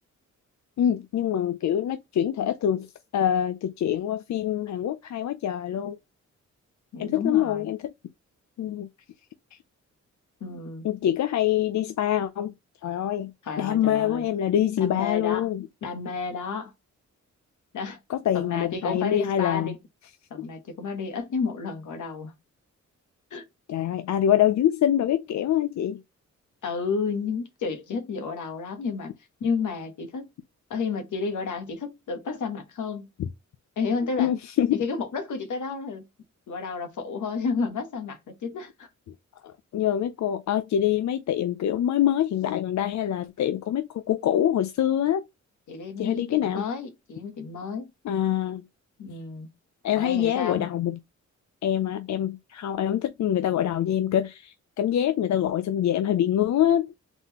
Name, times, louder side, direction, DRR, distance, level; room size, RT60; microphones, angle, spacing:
voice 1, 0.8-2.9 3.1-6.0 7.0-7.8 8.6-8.9 9.5-9.6 10.8-12.5 12.8-13.3 13.6-15.7 18.1-19.7 23.7-26.0 33.2-33.3 34.2-34.8 39.4-45.2 46.0-46.6 48.0-48.6 49.8-51.0 51.6-56.9, left 11 dB, 65° left, 0.5 m, -25 dB
voice 2, 6.9-7.7 10.4-10.9 13.4-14.2 14.8-15.5 15.8-16.7 17.7-18.0 18.3-19.8 20.3-22.3 23.3-23.4 26.6-29.1 29.4-30.3 30.7-33.1 33.8-34.3 34.7-36.0 36.5-38.9 45.7-47.9 49.0-49.5 50.0-50.7, left 5 dB, 80° left, 1.2 m, -31 dB
4.0 x 3.6 x 2.9 m
wide cardioid pair, 130°, 30 cm